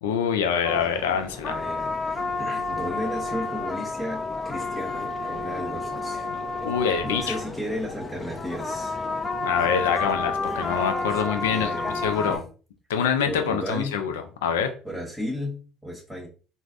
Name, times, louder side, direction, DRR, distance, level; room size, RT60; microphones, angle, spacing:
voice 1, 0.0-1.6 6.6-7.4 9.4-11.7 12.0-12.4 12.9-14.1 14.4-14.7, left 7 dB, 90° left, 6 dB, 0.4 m, -25 dB
sound 1, 0.6-12.4, left 3 dB, 30° left, 0.5 m, -30 dB
voice 2, 1.5-6.3 7.0-9.0 11.5-12.4 13.3-14.0 14.8-16.3, equal, ahead, -2 dB, 1.0 m, -34 dB
3.2 x 2.0 x 2.5 m, 0.37 s
hypercardioid pair, 65°, 0 cm